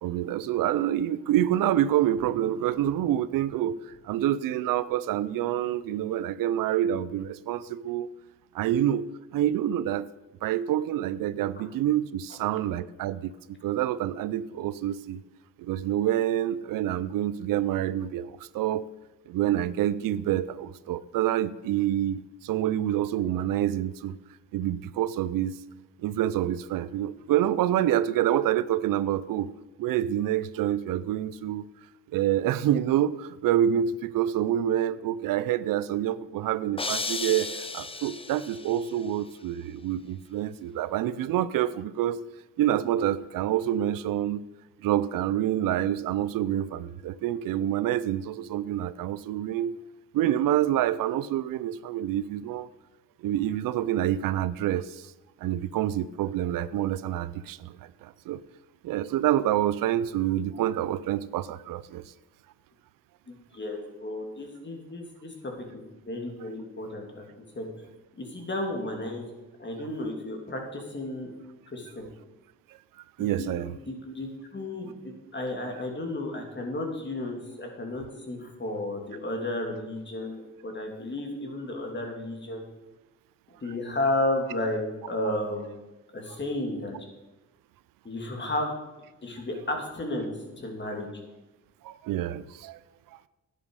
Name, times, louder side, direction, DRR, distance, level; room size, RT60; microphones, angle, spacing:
voice 1, 0.0-8.1 8.5-10.1 10.4-13.3 13.6-15.2 15.6-18.9 19.3-24.1 24.5-25.5 26.0-29.5 29.8-31.7 32.1-42.2 42.6-44.4 44.8-49.7 50.1-52.7 53.2-55.1 55.4-58.4 58.8-62.0 73.2-73.8 91.8-92.8, right 11 dB, 85° right, 17 dB, 0.5 m, -27 dB
sound 1, 36.8-38.9, left 3 dB, 15° left, 0.7 m, -34 dB
voice 2, 63.3-67.2 67.5-67.8 68.2-69.3 69.6-71.3 71.7-72.0 73.2-73.6 73.8-82.7 83.6-85.7 86.1-87.0 88.0-88.7 89.2-91.1, left 1 dB, 35° left, 2 dB, 2.9 m, -33 dB
10.5 x 10.0 x 4.8 m, 1.0 s
cardioid pair, 70°, 32 cm